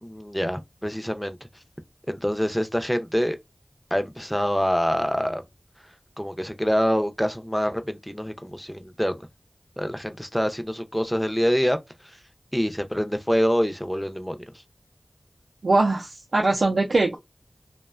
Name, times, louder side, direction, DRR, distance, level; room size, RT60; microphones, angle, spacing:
voice 1, 0.0-1.4 2.1-3.4 3.9-5.4 6.2-9.2 9.8-11.8 12.0-12.2 12.5-14.4, equal, 5° left, 0.5 m, -25 dB
voice 2, 15.6-17.2, right 2 dB, 90° right, 0.4 m, -21 dB
2.5 x 2.1 x 2.3 m
wide cardioid pair, 40°, 0 cm